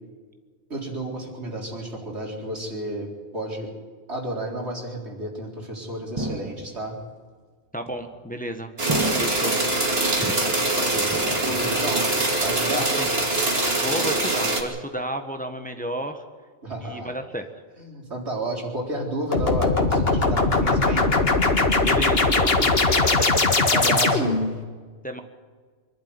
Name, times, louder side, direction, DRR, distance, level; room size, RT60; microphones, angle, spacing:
voice 1, 0.7-3.7 4.1-7.0 10.7-12.0 12.4-12.9 16.6-17.1 17.8-21.1 23.0-24.4, right 1 dB, 85° right, -1 dB, 4.4 m, -32 dB
sound 1, 6.2-7.0 7.9-8.4 8.9-9.7 10.2-10.8 11.1-11.9 12.2-12.6 13.1-13.7, right 1 dB, 25° right, 2.0 m, -33 dB
voice 2, 7.7-8.7 9.2-9.6 10.2-10.3 12.7-13.1 13.7-16.2 16.8-17.5 21.8-23.3 25.0-25.2, right 1 dB, 10° left, 6 dB, 1.3 m, -32 dB
sound 2, 8.8-14.6, right 2 dB, 65° right, 2.9 m, -23 dB
sound 3, 19.3-24.5, left 3 dB, 65° left, 2.0 m, -20 dB
24.5 x 12.0 x 9.6 m, 1.5 s
omnidirectional pair, 1.1 m